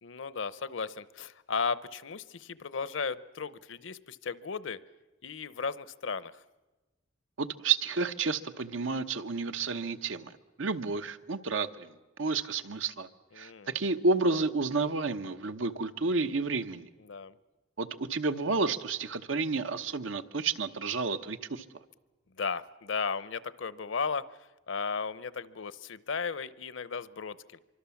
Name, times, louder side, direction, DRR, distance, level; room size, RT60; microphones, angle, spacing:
voice 1, 0.0-4.8 5.2-6.4 13.3-13.8 17.0-17.4 22.4-24.3 24.7-27.6, left 5 dB, 70° left, 17 dB, 0.8 m, -35 dB
voice 2, 7.4-10.3 10.6-11.9 12.2-13.1 13.4-16.9 17.8-21.6, right 4 dB, 85° right, 10 dB, 1.0 m, -30 dB
25.0 x 24.5 x 7.2 m, 1.1 s
head